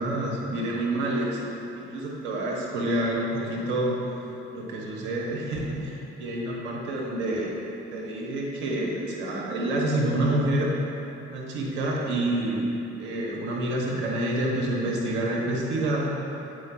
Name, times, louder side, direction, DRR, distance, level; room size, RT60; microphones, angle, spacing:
voice 1, 0.0-1.4 1.8-4.0 4.5-7.5 7.9-10.7 11.3-12.7 13.0-16.1, right 1 dB, 80° right, -3 dB, 1.3 m, -28 dB
8.3 x 4.9 x 4.4 m, 2.9 s
hypercardioid pair, 50°, 34 cm